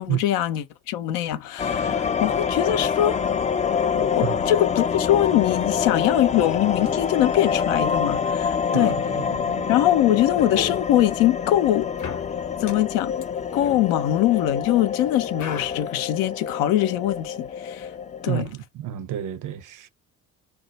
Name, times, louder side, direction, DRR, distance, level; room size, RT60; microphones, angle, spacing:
voice 1, 0.0-3.2 3.9-9.0 9.7-11.9 12.6-13.1 13.5-17.9 18.2-18.5, left 13 dB, 85° left, 0.5 m, -22 dB
sound 1, 1.6-18.3, left 6 dB, 20° left, 0.3 m, -26 dB
voice 2, 8.7-9.7 18.2-19.9, right 12 dB, 60° right, 0.6 m, -30 dB
sound 2, 10.4-10.8 12.0-14.7 15.4-15.8, left 7 dB, 55° left, 0.8 m, -36 dB
2.4 x 2.1 x 3.9 m
supercardioid pair, 60°, 35 cm